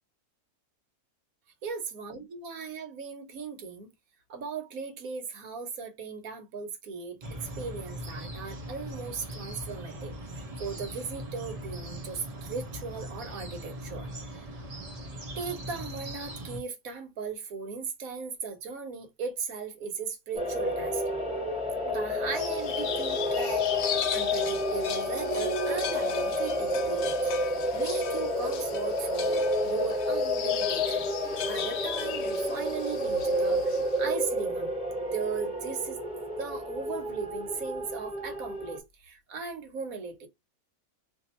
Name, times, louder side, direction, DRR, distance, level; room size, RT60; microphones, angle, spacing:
voice 1, 1.6-3.9 4.3-14.1 15.4-21.0 21.8-33.6 34.0-34.7 35.1-36.0 36.4-40.3, right 5 dB, 65° right, 1.4 m, -37 dB
sound 1, 7.2-16.6, equal, 30° right, 0.8 m, -40 dB
sound 2, 20.3-38.8, left 1 dB, 5° right, 1.3 m, -30 dB
sound 3, 22.3-34.0, left 8 dB, 65° left, 0.7 m, -37 dB
2.8 x 2.7 x 4.2 m
omnidirectional pair, 1.6 m